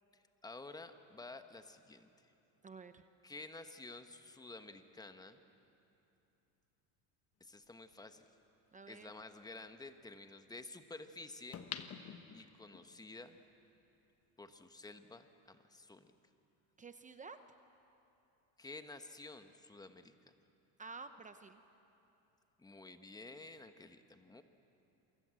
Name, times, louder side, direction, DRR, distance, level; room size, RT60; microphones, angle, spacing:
voice 1, 0.1-2.1 3.2-5.4 7.4-8.2 8.9-11.6 12.3-13.4 14.4-16.1 18.6-20.3 22.6-24.4, left 2 dB, 10° left, 8 dB, 1.2 m, -51 dB
voice 2, 2.6-3.0 8.7-9.1 16.8-17.4 20.8-21.6, right 4 dB, 20° right, 9 dB, 0.8 m, -51 dB
sound 1, 7.9-8.0 11.5-12.8 13.3-13.4, left 8 dB, 35° left, 1.4 m, -46 dB
28.5 x 24.0 x 7.7 m, 2.9 s
supercardioid pair, 130°, 43 cm